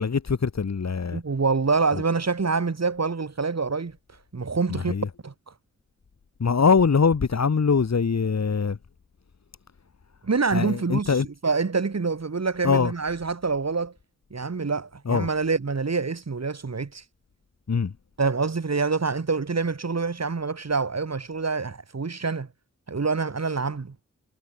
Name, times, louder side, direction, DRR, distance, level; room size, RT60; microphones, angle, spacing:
voice 1, 0.0-1.2 4.7-5.1 6.4-8.8 10.5-11.3 12.6-12.9 15.1-15.3 17.7-17.9, left 5 dB, 60° left, 2.1 m, -22 dB
voice 2, 1.1-4.0 4.3-4.9 5.2-5.3 10.2-13.9 14.3-17.0 18.2-22.5 22.9-23.9, right 4 dB, 55° right, 6.4 m, -26 dB
wide cardioid pair, 65°, 31 cm